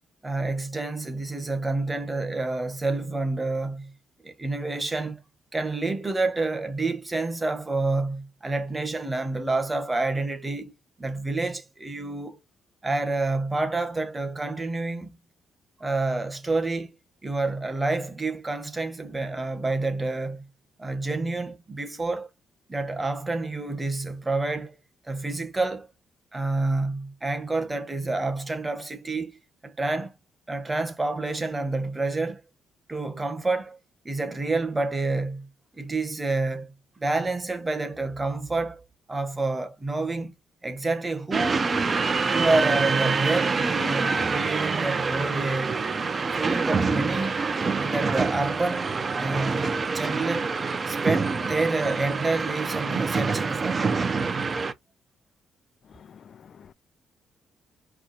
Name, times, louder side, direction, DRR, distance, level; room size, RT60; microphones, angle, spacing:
voice 1, 0.2-3.9 4.2-5.2 5.5-10.7 11.0-12.4 12.8-15.1 15.8-16.9 17.2-20.5 20.8-22.3 22.7-24.8 25.1-25.9 26.3-30.1 30.5-32.4 32.9-33.8 34.0-35.5 35.7-36.7 37.0-40.3 40.6-41.7 42.3-45.8 46.3-47.5 47.8-48.9 49.2-50.5 50.9-53.8, right 3 dB, 20° right, 1.3 m, -28 dB
sound 1, 41.3-54.7, right 4 dB, 35° right, 0.8 m, -26 dB
voice 2, 55.9-56.7, left 7 dB, 55° left, 0.3 m, -50 dB
4.7 x 2.3 x 4.1 m
cardioid pair, 90°, 0 cm